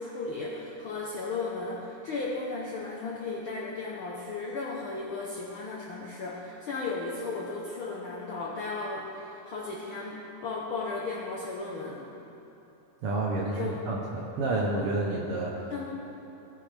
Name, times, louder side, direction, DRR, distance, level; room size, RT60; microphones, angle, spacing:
voice 1, 0.0-12.1 13.6-13.7 15.7-15.9, left 3 dB, 70° left, -4 dB, 1.2 m, -35 dB
voice 2, 13.0-15.7, right 2 dB, 70° right, -2 dB, 1.5 m, -30 dB
17.0 x 6.7 x 3.3 m, 3.0 s
omnidirectional pair, 3.4 m